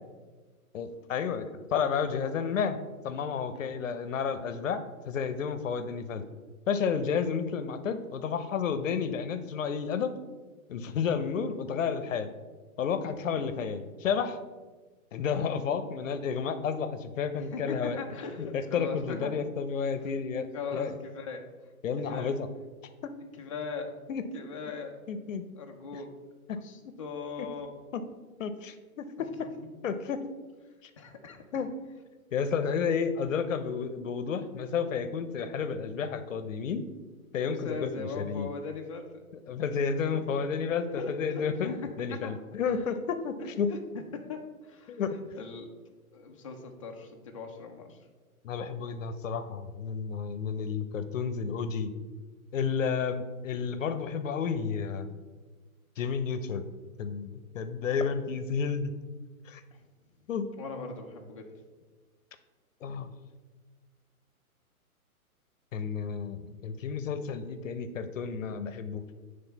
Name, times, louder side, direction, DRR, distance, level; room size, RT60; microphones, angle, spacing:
voice 1, 0.7-2.8 3.0-6.3 6.7-10.1 10.7-12.3 12.8-14.4 15.1-18.0 18.4-20.9 21.8-22.5 23.0-23.2 24.1-24.3 25.1-25.4 25.9-26.0 26.5-27.0 27.4-27.5 27.9-28.0 28.4-29.5 29.8-30.2 31.5-31.7 32.3-36.9 37.3-38.5 39.5-41.7 42.0-43.7 44.9-45.2 48.4-51.9 52.5-55.1 56.0-56.7 57.0-58.9 59.4-59.6 60.3-60.5 62.8-63.1 65.7-69.0, left 6 dB, 60° left, 10 dB, 0.7 m, -31 dB
voice 2, 17.3-19.4 20.5-21.5 22.1-22.3 23.4-23.9 24.3-25.0 25.6-26.1 26.6-27.7 29.6-29.7 31.0-31.6 37.5-39.2 40.1-40.4 40.9-42.4 42.6-42.8 43.7-43.8 44.1-45.0 45.3-45.7 46.1-48.0 59.7-59.8 60.6-61.5, left 4 dB, 25° left, 2 dB, 0.4 m, -40 dB
8.9 x 3.3 x 3.9 m, 1.3 s
hypercardioid pair, 135°, 44 cm